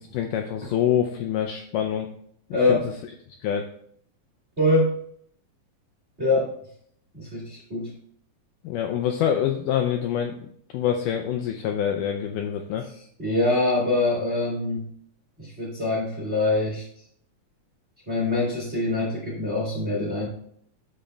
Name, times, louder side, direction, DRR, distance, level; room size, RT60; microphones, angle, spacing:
voice 1, 0.1-2.1 2.7-2.8 3.4-3.7 8.6-10.3 10.7-12.8, left 9 dB, 80° left, 4 dB, 1.9 m, -25 dB
voice 2, 2.5-2.9 4.6-4.9 6.2-6.5 7.1-7.9 13.2-14.9 15.4-16.8 18.1-20.3, left 2 dB, 25° right, -4 dB, 1.4 m, -24 dB
13.5 x 5.0 x 2.3 m, 0.66 s
omnidirectional pair, 4.2 m